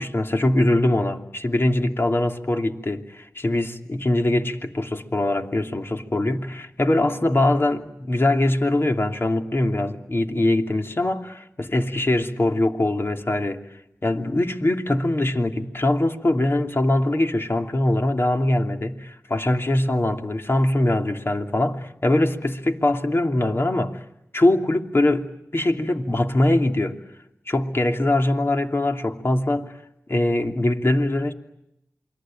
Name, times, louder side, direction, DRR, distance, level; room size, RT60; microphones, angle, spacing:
voice 1, 0.0-13.6 14.0-24.0 24.3-27.0 27.5-29.7 30.1-31.3, left 1 dB, 45° left, 2.9 m, -22 dB
28.5 x 22.0 x 8.9 m
cardioid pair, 45°, 6 cm